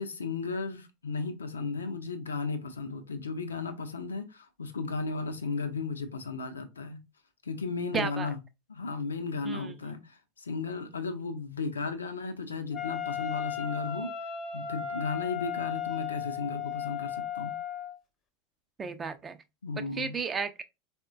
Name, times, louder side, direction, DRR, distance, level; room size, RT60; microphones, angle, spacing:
voice 1, 0.0-7.0 7.4-8.4 8.7-14.1 14.5-17.5 19.6-20.1, left 4 dB, 85° left, 0.5 m, -35 dB
voice 2, 7.9-8.3 9.4-10.0 18.8-19.4 19.9-20.6, right 5 dB, 25° right, 0.3 m, -34 dB
Wind instrument woodwind instrument, 12.7-18.0, left 9 dB, 35° left, 0.6 m, -35 dB
3.6 x 2.1 x 2.4 m
hypercardioid pair, 85°, 0 cm